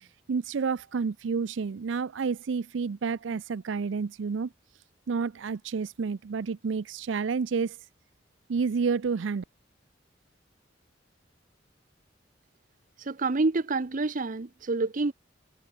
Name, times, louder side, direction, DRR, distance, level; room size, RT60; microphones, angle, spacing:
voice 1, 0.3-4.5 5.1-7.8 8.5-9.4, right 5 dB, 75° right, 0.5 m, -29 dB
voice 2, 13.0-15.1, right 3 dB, 45° right, 0.8 m, -28 dB
head